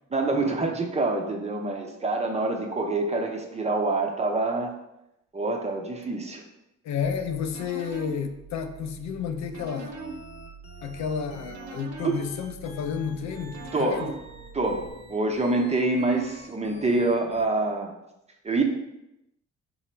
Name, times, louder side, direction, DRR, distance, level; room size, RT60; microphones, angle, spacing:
voice 1, 0.1-4.7 5.3-6.4 12.0-12.2 13.7-14.1 14.5-17.9 18.4-18.6, right 2 dB, 20° right, 2 dB, 0.6 m, -26 dB
voice 2, 6.8-10.0 10.8-14.1, left 7 dB, 65° left, 6 dB, 0.5 m, -31 dB
sound 1, 7.0-14.9, right 4 dB, 65° right, 0.7 m, -42 dB
sound 2, 9.8-17.5, right 1 dB, 20° left, 1.1 m, -48 dB
3.7 x 2.0 x 4.3 m, 0.86 s
cardioid pair, 90°, 30 cm